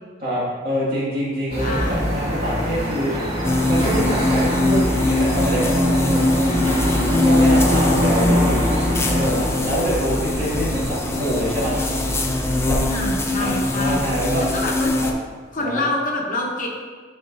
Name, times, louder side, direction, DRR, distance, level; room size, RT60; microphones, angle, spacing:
voice 1, 0.2-3.4 3.6-6.4 7.2-11.8 12.7-12.8 13.3-14.5 15.0-15.1 15.6-15.9, equal, 50° right, -6 dB, 1.9 m, -25 dB
sound 1, 1.5-14.9, equal, 30° right, 1.5 m, -24 dB
voice 2, 1.6-2.0 12.9-14.1 14.4-14.9 15.5-16.7, left 2 dB, 40° left, -1 dB, 0.9 m, -26 dB
sound 2, 3.4-15.1, left 1 dB, 15° left, 0.4 m, -22 dB
9.8 x 4.2 x 2.6 m, 1.5 s
head